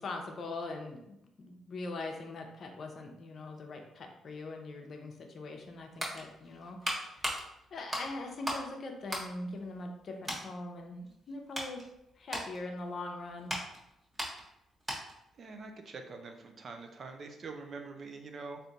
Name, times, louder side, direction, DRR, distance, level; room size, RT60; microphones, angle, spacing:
voice 1, 0.0-7.2 7.7-11.8 12.2-13.5, left 2 dB, 55° left, 3 dB, 0.7 m, -42 dB
sound 1, 5.7-8.7 9.0-10.0 10.2-10.5 11.0-15.3 15.6-15.7, equal, 20° right, 1.2 m, -39 dB
voice 2, 15.4-18.6, right 4 dB, 50° right, 4 dB, 0.6 m, -45 dB
3.5 x 2.7 x 4.0 m, 0.84 s
cardioid pair, 90°, 0 cm